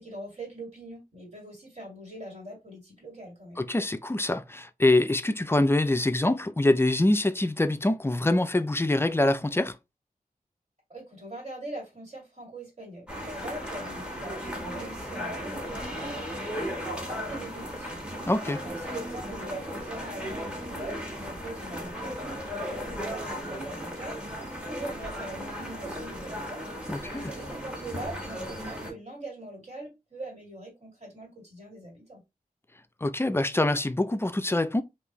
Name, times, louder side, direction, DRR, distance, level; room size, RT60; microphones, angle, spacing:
voice 1, 0.0-3.7 10.9-16.6 17.0-18.0 18.6-24.2 24.6-32.2, right 1 dB, 50° right, 2.1 m, -42 dB
voice 2, 3.6-9.8 18.3-18.6 26.9-27.3 33.0-34.8, left 2 dB, 15° left, 0.4 m, -25 dB
sound 1, 13.1-28.9, equal, 5° right, 1.2 m, -36 dB
3.4 x 2.7 x 3.0 m
wide cardioid pair, 85°, 15 cm